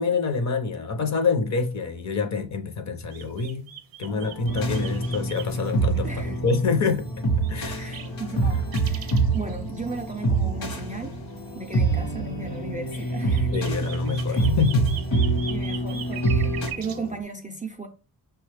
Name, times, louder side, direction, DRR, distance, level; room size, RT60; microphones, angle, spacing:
voice 1, 0.0-3.6 4.0-7.1 7.5-7.9 13.5-15.0, left 4 dB, 45° left, 0.6 m, -26 dB
sound 1, 3.1-6.5 6.8-6.9 7.4-10.5 10.8-11.1 11.7-12.0 12.5-12.6 13.0-17.1, right 9 dB, 65° right, 0.6 m, -42 dB
sound 2, 4.1-17.2, left 1 dB, 80° left, 0.8 m, -42 dB
sound 3, 4.5-16.7, right 2 dB, 65° left, 1.1 m, -26 dB
voice 2, 6.0-6.4 7.8-11.1 11.6-13.5 13.8-13.9 14.3-14.5 15.5-16.5 16.8-17.9, right 4 dB, 20° right, 0.3 m, -36 dB
6.0 x 2.3 x 3.2 m
wide cardioid pair, 175°, 38 cm